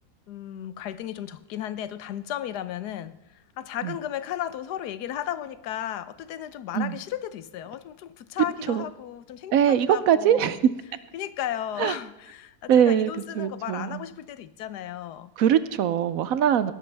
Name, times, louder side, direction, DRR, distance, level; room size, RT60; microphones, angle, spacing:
voice 1, 0.3-3.2 3.6-10.6 11.1-15.3, left 11 dB, 80° left, 1.3 m, -34 dB
voice 2, 9.5-10.6 11.8-11.9 12.7-13.1 13.4-14.0 15.4-16.7, right 9 dB, 70° right, 0.9 m, -22 dB
17.5 x 13.5 x 3.3 m
omnidirectional pair, 1.7 m